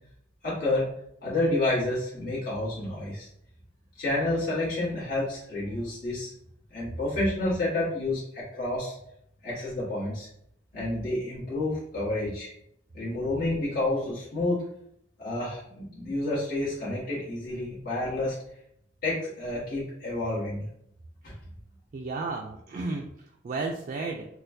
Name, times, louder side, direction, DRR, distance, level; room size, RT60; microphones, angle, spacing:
voice 1, 0.4-0.9 1.2-3.3 4.0-6.3 6.7-8.9 9.4-10.3 10.7-12.5 12.9-14.6 15.2-18.3 19.0-20.6 21.2-21.3, left 2 dB, 55° left, -9 dB, 1.4 m, -29 dB
voice 2, 21.9-24.3, right 3 dB, 45° right, 1 dB, 0.3 m, -33 dB
4.1 x 2.2 x 2.6 m, 0.74 s
head